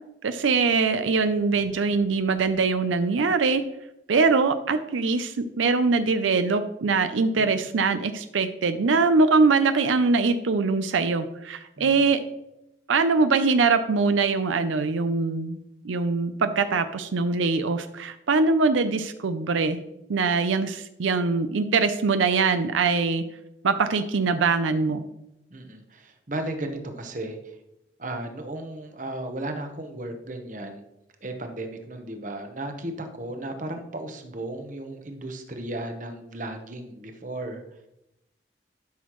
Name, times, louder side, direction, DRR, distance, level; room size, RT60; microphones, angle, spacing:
voice 1, 0.2-3.6 4.1-12.2 12.9-19.8 20.1-23.2 23.6-25.0, right 4 dB, 90° right, 10 dB, 0.5 m, -23 dB
voice 2, 11.8-12.1 25.5-27.6 28.0-30.8 31.2-37.6, right 1 dB, 40° right, 6 dB, 1.0 m, -35 dB
12.0 x 6.3 x 3.1 m, 0.87 s
head